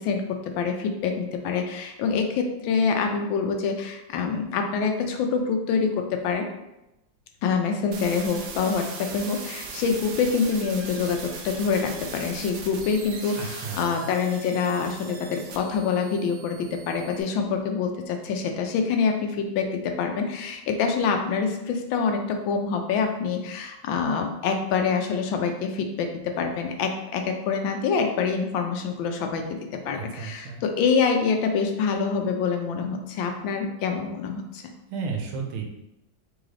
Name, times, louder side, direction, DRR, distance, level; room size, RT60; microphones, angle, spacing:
voice 1, 0.0-6.5 7.4-29.6 29.8-34.6, left 5 dB, 75° left, 4 dB, 1.3 m, -26 dB
sound 1, 7.9-17.2, right 4 dB, 70° right, 1.1 m, -39 dB
voice 2, 13.4-14.1 29.9-30.6 34.9-35.7, right 5 dB, 85° right, 1 dB, 1.6 m, -33 dB
3.9 x 3.2 x 3.7 m, 0.92 s
omnidirectional pair, 2.2 m